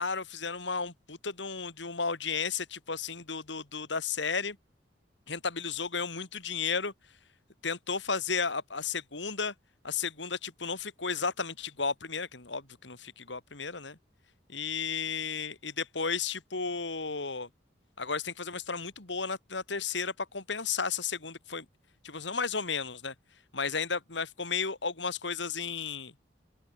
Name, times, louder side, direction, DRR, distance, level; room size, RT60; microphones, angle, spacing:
voice 1, 0.0-4.6 5.3-6.9 7.6-9.5 9.8-14.0 14.5-17.5 18.0-21.6 22.0-23.1 23.5-26.1, left 5 dB, 70° left, 2.8 m, -33 dB
open air
head